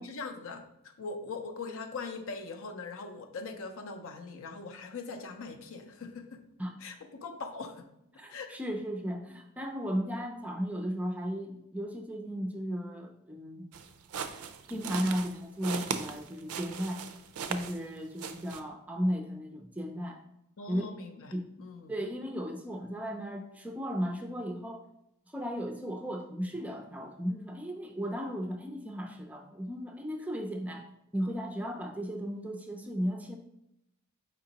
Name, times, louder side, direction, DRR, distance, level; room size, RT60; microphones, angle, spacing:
voice 1, 0.0-6.4 6.8-7.9 8.3-8.6 20.6-21.9, left 4 dB, 65° left, 6 dB, 0.5 m, -41 dB
voice 2, 8.2-13.7 14.7-17.0 17.5-20.2 20.7-20.8 21.3-21.5 21.9-24.8 25.3-30.8 31.1-33.4, equal, 5° right, 3 dB, 0.4 m, -35 dB
sound 1, 13.7-17.9 18.2-18.6, right 6 dB, 75° right, 0.4 m, -38 dB
5.0 x 3.7 x 2.8 m, 0.81 s
head